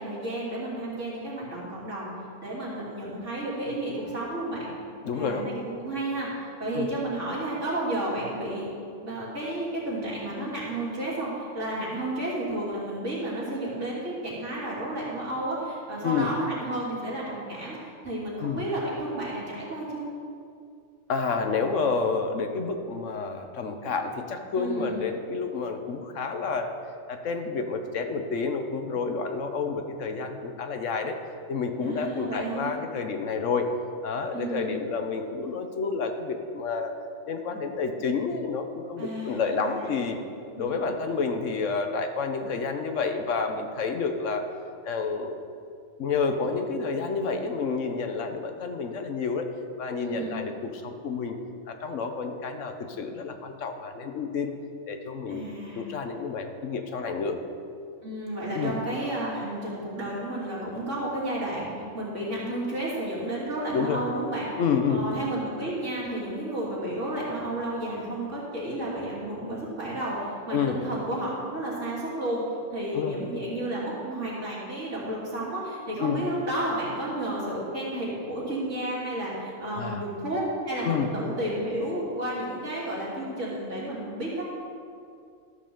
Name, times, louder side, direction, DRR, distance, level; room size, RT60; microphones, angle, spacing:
voice 1, 0.0-2.1 2.4-4.7 5.1-6.3 6.6-8.7 9.0-17.8 18.0-20.0 24.5-25.0 31.8-32.7 34.3-34.7 39.0-39.9 40.5-40.8 50.0-50.4 55.3-55.9 58.0-61.7 61.9-64.5 64.9-72.4 72.7-84.5, right 1 dB, 60° right, -7 dB, 3.1 m, -32 dB
voice 2, 5.0-5.4 6.7-6.9 16.0-16.3 18.4-18.6 21.1-26.7 27.1-31.2 31.5-33.7 34.0-36.9 37.3-40.2 40.6-44.4 44.8-45.4 46.0-49.5 49.8-50.5 50.8-51.4 51.7-54.5 54.9-55.4 55.7-57.4 58.5-58.8 63.7-64.0 64.6-65.0 70.5-70.8 72.9-73.2 76.0-76.2 79.8-80.0 80.8-81.1, left 5 dB, 65° left, 6 dB, 1.3 m, -29 dB
13.5 x 5.6 x 6.9 m, 2.3 s
omnidirectional pair, 1.4 m